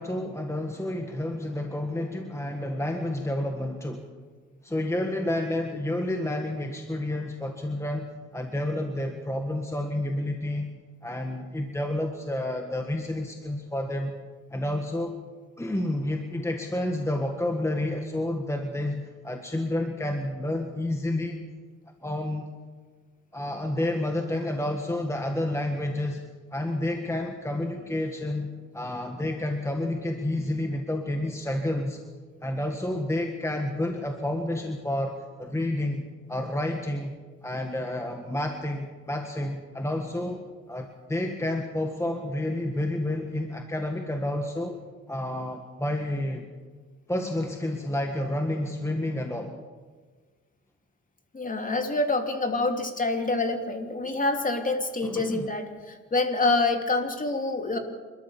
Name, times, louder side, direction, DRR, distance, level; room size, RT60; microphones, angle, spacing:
voice 1, 0.0-4.1 4.6-10.7 11.0-14.2 14.5-15.1 15.6-21.4 22.0-22.4 23.3-26.3 26.5-28.5 28.7-32.0 32.4-37.2 37.4-44.8 45.1-46.5 47.1-49.6 55.0-55.5, left 1 dB, 10° left, 4 dB, 1.8 m, -30 dB
voice 2, 51.3-57.8, left 2 dB, 25° left, 5 dB, 3.0 m, -26 dB
28.0 x 13.0 x 7.2 m, 1.4 s
cardioid pair, 90°, 30 cm